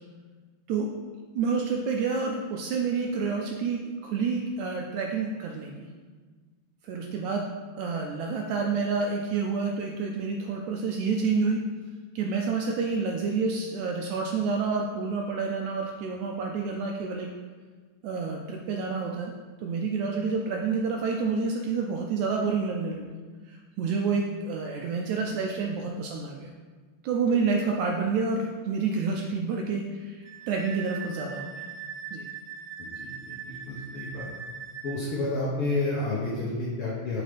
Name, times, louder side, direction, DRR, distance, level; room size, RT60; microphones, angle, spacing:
voice 1, 1.4-5.9 6.8-7.5 7.8-11.6 12.2-17.3 18.0-19.3 19.6-23.1 23.5-26.5 27.0-31.5 32.1-32.3, right 4 dB, 80° right, 1 dB, 1.7 m, -28 dB
Wind instrument woodwind instrument, 30.2-35.0, right 6 dB, 60° right, 1.3 m, -40 dB
voice 2, 32.8-34.3 34.8-37.2, left 2 dB, 80° left, -4 dB, 1.2 m, -30 dB
6.4 x 4.3 x 5.0 m, 1.4 s
omnidirectional pair, 3.9 m